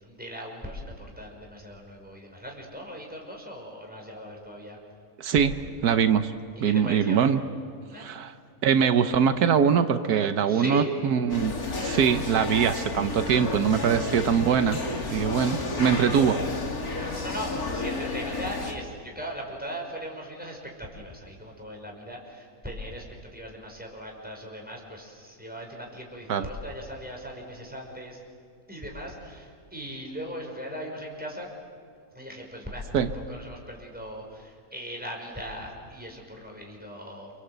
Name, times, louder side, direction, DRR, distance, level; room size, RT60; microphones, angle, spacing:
voice 1, 0.0-4.8 6.6-7.2 7.9-8.1 10.5-10.9 17.0-28.2 28.7-31.5 32.1-37.4, equal, 5° right, 0 dB, 5.8 m, -39 dB
voice 2, 5.2-5.5 5.8-6.3 6.6-7.4 8.0-8.3 8.6-11.5 11.8-14.8 15.1-16.4 26.3-26.4 32.9-33.1, right 7 dB, 85° right, 9 dB, 1.5 m, -22 dB
sound 1, 11.3-18.7, left 3 dB, 75° left, 3.1 m, -32 dB
29.5 x 25.0 x 8.1 m, 2.3 s
omnidirectional pair, 1.6 m